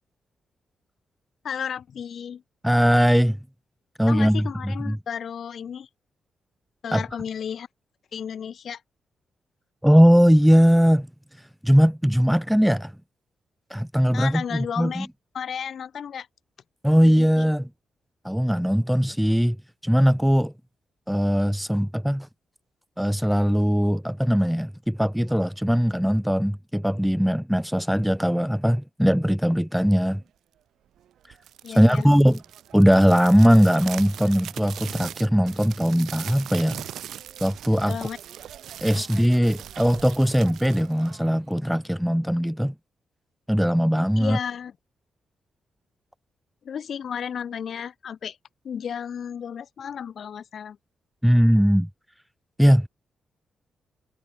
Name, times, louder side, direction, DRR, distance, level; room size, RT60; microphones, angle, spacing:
voice 1, 1.4-2.4 4.1-5.9 6.8-7.7 8.1-8.8 14.1-15.1 15.3-16.3 17.0-17.4 31.6-32.1 37.9-38.2 39.0-39.1 44.2-44.7 46.6-48.4 48.6-50.8, left 8 dB, 50° left, 3.5 m, -33 dB
voice 2, 2.6-3.4 4.0-5.0 6.9-7.0 9.8-11.1 11.6-12.9 13.7-15.1 16.8-17.7 18.2-19.6 19.8-20.5 21.1-22.3 23.0-30.2 31.7-32.4 32.7-36.8 37.4-38.1 38.8-42.7 43.5-44.4 51.2-51.9 52.6-52.9, equal, ahead, 0.6 m, -20 dB
sound 1, 31.3-41.7, right 10 dB, 80° right, 2.2 m, -40 dB
wide cardioid pair, 155°, 0 cm